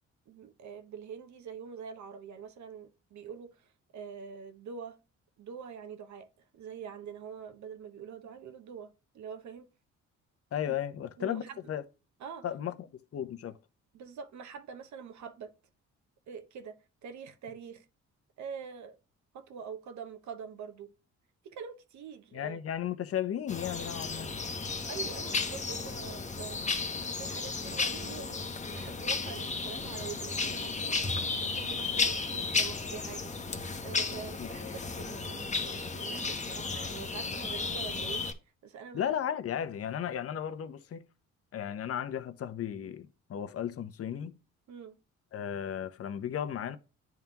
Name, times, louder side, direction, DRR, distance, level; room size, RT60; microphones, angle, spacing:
voice 1, 0.3-5.0 5.4-6.3 6.5-9.7 10.6-10.7 11.2-11.7 12.2-12.4 13.9-15.5 16.3-17.9 18.4-19.0 19.3-20.9 21.4-22.6 24.9-26.7 27.0-28.4 28.7-31.0 31.4-33.3 33.8-38.3 38.6-39.1 44.7-45.0, right 7 dB, 70° right, 1.1 m, -45 dB
voice 2, 10.5-11.4 11.7-11.8 12.4-13.6 22.3-24.3 34.4-34.7 38.9-41.0 41.5-44.3 45.3-46.8, left 9 dB, 50° left, 0.8 m, -35 dB
sound 1, 23.5-38.3, left 4 dB, 25° left, 1.0 m, -34 dB
10.5 x 3.6 x 2.9 m
cardioid pair, 90°, 30 cm